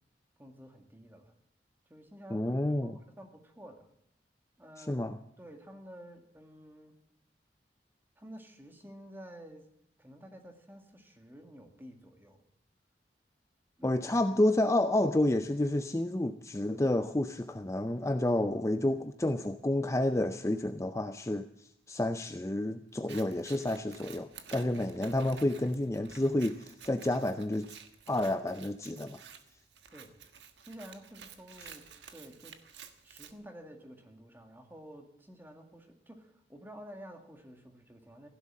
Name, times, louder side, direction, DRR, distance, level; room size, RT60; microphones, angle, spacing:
voice 1, 0.4-1.3 1.9-3.9 4.6-5.1 5.4-7.0 8.2-9.7 10.0-12.4 13.8-14.0 29.9-30.2 30.7-38.3, equal, 10° right, 5 dB, 2.1 m, -51 dB
voice 2, 2.3-2.9 4.8-5.2 13.8-27.7 28.1-29.2, left 1 dB, 15° left, 9 dB, 0.5 m, -30 dB
Scissors, 22.9-33.3, right 7 dB, 85° right, 1.5 m, -52 dB
16.0 x 11.5 x 7.5 m, 0.77 s
head